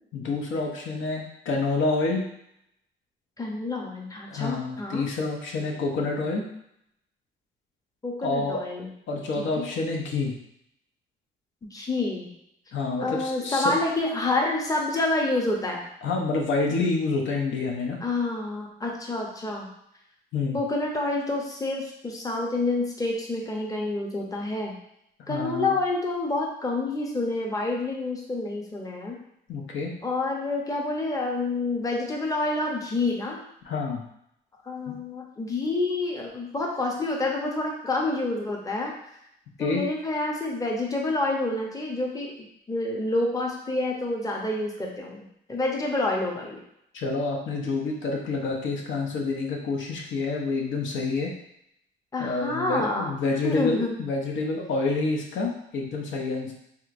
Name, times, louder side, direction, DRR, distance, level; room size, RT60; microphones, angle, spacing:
voice 1, 0.1-2.2 4.3-6.5 8.2-8.6 9.1-10.3 12.7-13.7 16.0-18.0 20.3-20.6 25.3-25.8 29.5-29.9 33.6-34.0 34.9-35.0 39.6-39.8 46.9-51.3 52.2-56.5, left 3 dB, 75° left, 0 dB, 0.7 m, -28 dB
voice 2, 3.4-5.0 8.0-8.9 9.6-9.7 11.7-12.3 13.0-15.8 18.0-19.7 20.5-24.7 25.3-29.2 30.0-33.4 34.7-38.9 39.6-42.3 42.7-45.2 45.5-46.6 52.1-53.1 53.4-53.9, left 2 dB, 15° left, -1 dB, 0.7 m, -28 dB
3.5 x 2.9 x 2.5 m, 0.76 s
cardioid pair, 90°, 20 cm